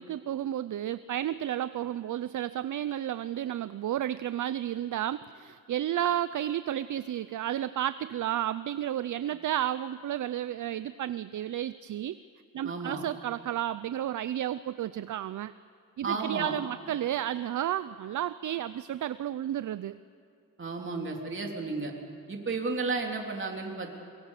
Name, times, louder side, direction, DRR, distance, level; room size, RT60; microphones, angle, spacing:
voice 1, 0.0-12.2 12.5-15.5 16.0-20.0, right 11 dB, 65° right, 14 dB, 0.6 m, -32 dB
voice 2, 12.6-13.0 16.0-16.5 20.6-21.9 22.3-23.9, right 3 dB, 35° right, 1 dB, 3.6 m, -33 dB
24.0 x 23.0 x 6.7 m, 2.5 s
cardioid pair, 105°, 33 cm